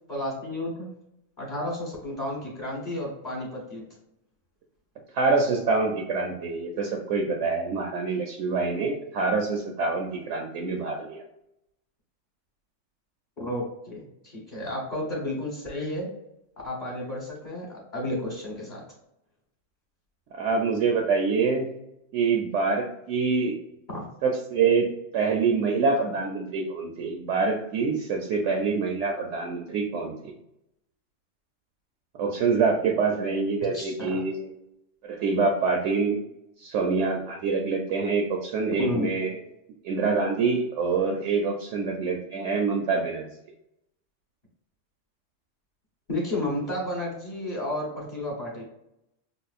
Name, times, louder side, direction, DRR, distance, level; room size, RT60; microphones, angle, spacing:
voice 1, 0.1-0.9 1.4-3.8 13.4-16.1 16.6-18.8 23.9-24.1 33.7-34.2 38.8-39.1 46.1-48.6, left 1 dB, 40° left, -4 dB, 1.0 m, -32 dB
voice 2, 5.1-11.2 20.3-21.7 22.1-23.6 24.2-24.9 25.1-30.3 32.2-34.5 35.0-36.2 36.6-39.3 39.8-43.3, right 4 dB, 75° right, 2 dB, 0.9 m, -25 dB
5.4 x 2.0 x 2.4 m, 0.83 s
omnidirectional pair, 1.3 m